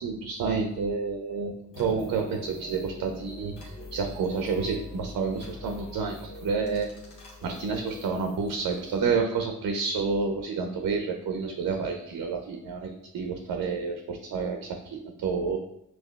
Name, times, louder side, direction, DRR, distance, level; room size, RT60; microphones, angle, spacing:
voice 1, 0.0-6.9 7.4-15.6, right 5 dB, 50° right, 4 dB, 0.6 m, -29 dB
sound 1, 1.7-9.0, left 2 dB, 75° left, 1.1 m, -44 dB
5.5 x 2.5 x 2.3 m, 0.76 s
hypercardioid pair, 45°, 42 cm